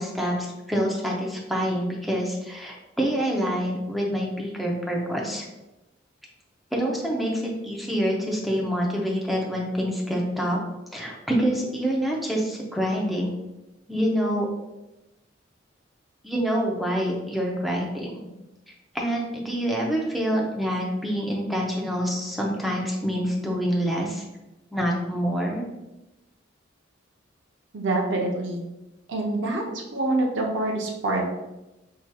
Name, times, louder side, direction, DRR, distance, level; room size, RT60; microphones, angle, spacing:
voice 1, 0.0-5.4 6.7-10.6 10.9-13.3 13.9-14.5 16.2-18.3 18.9-24.2 24.7-25.6, equal, ahead, -3 dB, 0.6 m, -26 dB
voice 2, 27.7-28.6 29.1-29.6 29.9-31.3, right 2 dB, 80° right, 0 dB, 0.6 m, -25 dB
4.6 x 2.9 x 2.2 m, 0.98 s
head